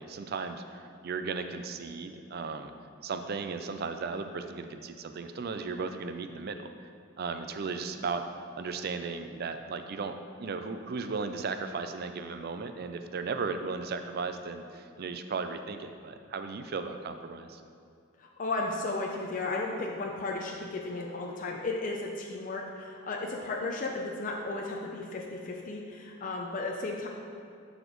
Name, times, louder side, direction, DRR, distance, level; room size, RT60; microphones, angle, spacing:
voice 1, 0.0-2.7 3.0-6.7 7.2-8.3 8.6-17.6, right 4 dB, 50° right, 8 dB, 0.4 m, -36 dB
voice 2, 18.2-27.1, left 2 dB, 40° left, -1 dB, 0.5 m, -34 dB
11.5 x 4.1 x 3.1 m, 2.4 s
head